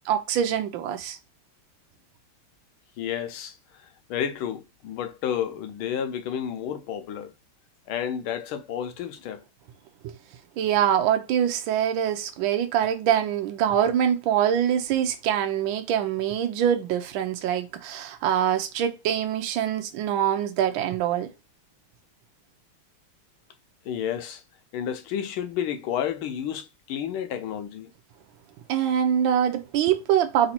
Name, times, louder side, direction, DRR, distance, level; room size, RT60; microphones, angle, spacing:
voice 1, 0.1-1.2 10.0-10.2 10.6-21.3 28.7-30.5, right 9 dB, 70° right, 1.4 m, -24 dB
voice 2, 3.0-7.3 7.9-9.4 23.8-24.4 24.7-27.9, left 9 dB, 75° left, 1.5 m, -31 dB
4.0 x 2.7 x 4.2 m
omnidirectional pair, 2.4 m